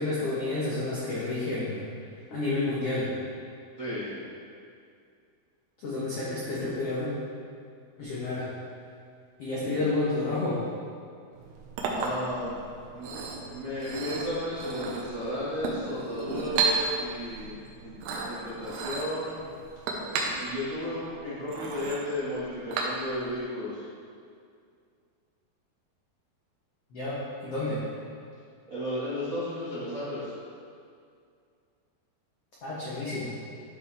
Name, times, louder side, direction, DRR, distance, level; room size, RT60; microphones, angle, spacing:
voice 1, 0.0-1.8 2.3-3.1 5.8-7.1 8.0-8.5 9.4-10.6 26.9-27.8 32.6-33.3, left 2 dB, 80° left, -8 dB, 1.3 m, -30 dB
voice 2, 3.8-4.2 9.7-9.8 11.9-12.6 12.9-19.4 20.4-23.8 28.7-30.3, left 1 dB, 60° right, -12 dB, 0.8 m, -34 dB
Chink clink, 11.3-23.4, right 4 dB, 85° right, 2.8 m, -34 dB
11.0 x 4.9 x 3.4 m, 2.3 s
omnidirectional pair, 4.5 m